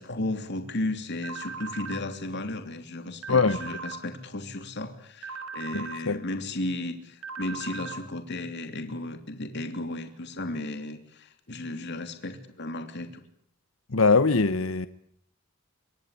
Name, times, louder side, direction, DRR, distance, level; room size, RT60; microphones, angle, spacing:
voice 1, 0.0-13.2, left 2 dB, 55° left, 3.0 m, -34 dB
sound 1, 1.2-2.0 3.2-4.0 5.2-6.0 7.2-8.0, right 5 dB, 65° right, 5.5 m, -38 dB
voice 2, 5.7-6.2 13.9-14.9, left 4 dB, 70° left, 1.1 m, -22 dB
28.0 x 24.0 x 8.5 m
head